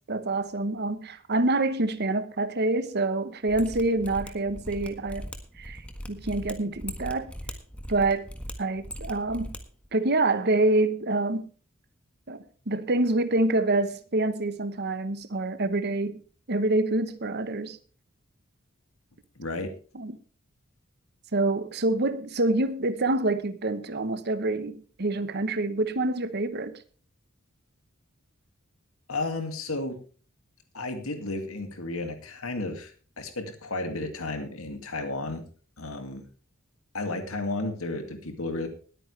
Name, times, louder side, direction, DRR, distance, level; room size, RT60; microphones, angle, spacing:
voice 1, 0.1-5.3 5.6-5.8 6.1-7.3 7.9-8.3 8.6-9.5 9.9-11.4 12.3-16.2 16.5-17.8 19.9-20.2 21.3-26.7, right 2 dB, 50° right, 1.1 m, -26 dB
Mechanisms, 3.5-9.6 9.8-9.9, equal, 5° left, 1.5 m, -39 dB
voice 2, 19.4-19.7 29.1-30.0 30.7-35.4 35.8-36.2 36.9-38.7, left 2 dB, 85° left, 2.3 m, -33 dB
20.0 x 9.2 x 3.3 m
head